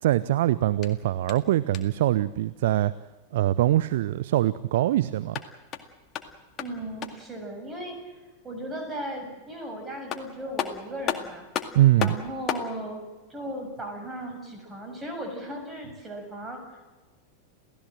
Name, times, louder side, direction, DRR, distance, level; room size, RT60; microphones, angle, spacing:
voice 1, 0.0-2.9 3.3-5.4 11.7-12.2, right 14 dB, 55° right, 17 dB, 0.6 m, -23 dB
sound 1, 0.8-2.1 5.1-7.4 9.6-9.7 10.1-12.7, left 8 dB, 30° left, 2.1 m, -35 dB
voice 2, 6.6-11.5 12.0-16.8, right 1 dB, 15° right, 4 dB, 7.5 m, -37 dB
28.5 x 16.0 x 7.8 m, 1.2 s
figure-of-eight pair, 90°, 0 cm